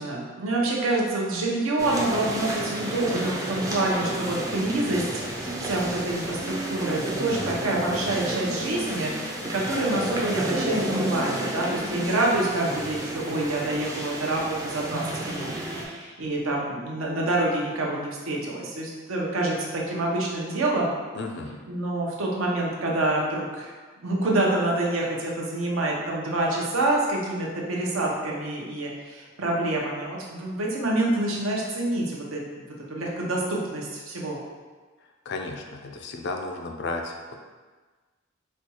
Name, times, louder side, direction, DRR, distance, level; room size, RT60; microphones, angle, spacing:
voice 1, 0.0-5.0 5.4-20.9 21.7-23.7 24.0-34.4, right 2 dB, 85° right, -2 dB, 0.7 m, -27 dB
sound 1, 1.8-15.8, right 1 dB, 15° right, 0.4 m, -31 dB
voice 2, 21.2-21.6 35.3-37.3, left 3 dB, 55° left, 3 dB, 0.4 m, -33 dB
4.2 x 2.3 x 2.9 m, 1.4 s
head